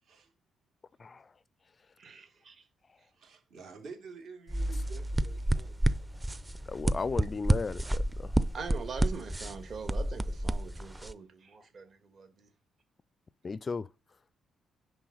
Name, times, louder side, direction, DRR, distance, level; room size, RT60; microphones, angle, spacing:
voice 1, 0.0-0.3 2.2-2.4 3.1-6.1, right 4 dB, 70° right, 3.1 m, -50 dB
voice 2, 2.0-2.6 8.5-12.5, right 5 dB, 50° right, 1.9 m, -43 dB
sound 1, 4.5-11.1, right 1 dB, 15° right, 0.5 m, -30 dB
voice 3, 6.7-8.3 13.4-13.9, left 4 dB, 35° left, 0.3 m, -35 dB
10.0 x 3.6 x 6.4 m
cardioid pair, 90°, 0 cm